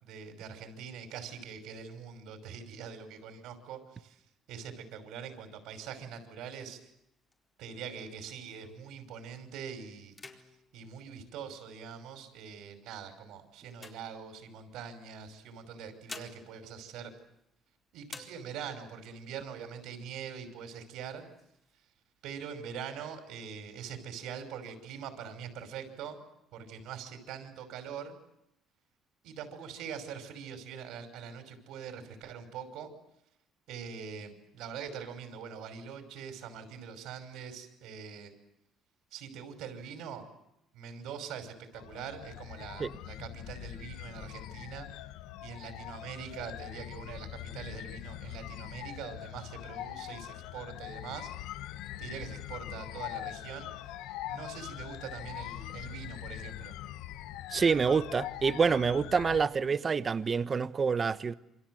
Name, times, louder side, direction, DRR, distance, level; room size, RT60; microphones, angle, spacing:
voice 1, 0.0-4.2 4.5-6.8 7.6-10.2 10.7-17.1 17.9-21.2 22.2-26.2 26.5-28.1 29.2-32.9 33.7-38.3 39.1-40.2 40.7-44.9 45.4-51.3 52.0-53.7 54.3-56.7, right 7 dB, 80° right, 5.5 m, -43 dB
sound 1, 6.8-9.0 9.5-9.7 10.0-12.0 12.6-14.8 15.7-17.7 18.0-18.9 19.3-19.4 19.7-20.4 20.8-21.7, left 3 dB, 20° left, 4.2 m, -52 dB
sound 2, 41.7-59.4, left 14 dB, 85° left, 1.0 m, -42 dB
voice 2, 57.5-61.3, right 5 dB, 30° right, 1.2 m, -27 dB
28.0 x 26.5 x 7.9 m
cardioid pair, 135°, 0 cm